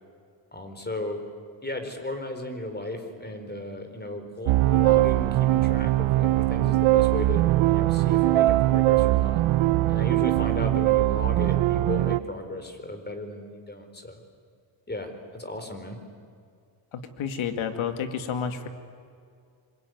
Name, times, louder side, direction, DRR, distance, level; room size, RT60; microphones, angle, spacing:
voice 1, 0.5-1.2 1.6-9.4 9.9-14.2 14.9-16.0, left 1 dB, 20° left, 7 dB, 4.5 m, -35 dB
sound 1, 4.5-12.2, right 17 dB, 90° right, 0.7 m, -21 dB
voice 2, 16.9-18.7, left 7 dB, 85° left, 8 dB, 2.3 m, -30 dB
26.0 x 23.0 x 9.5 m, 2.2 s
cardioid pair, 90°, 47 cm